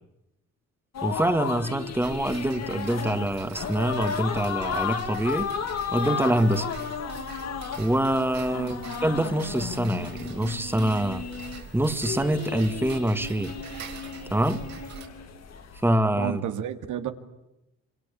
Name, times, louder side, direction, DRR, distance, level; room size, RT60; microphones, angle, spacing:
sound 1, 0.9-15.9, left 7 dB, 60° left, 2.5 m, -34 dB
voice 1, 1.0-5.5 5.9-6.7 7.8-11.2 11.7-13.6 14.3-14.6 15.8-16.4, right 1 dB, 5° right, 10 dB, 1.8 m, -25 dB
Tick-tock, 2.0-15.1, right 7 dB, 65° right, 4.3 m, -44 dB
voice 2, 16.2-17.1, right 9 dB, 85° right, 8 dB, 2.3 m, -31 dB
26.5 x 25.0 x 8.5 m, 0.90 s
cardioid pair, 90°, 30 cm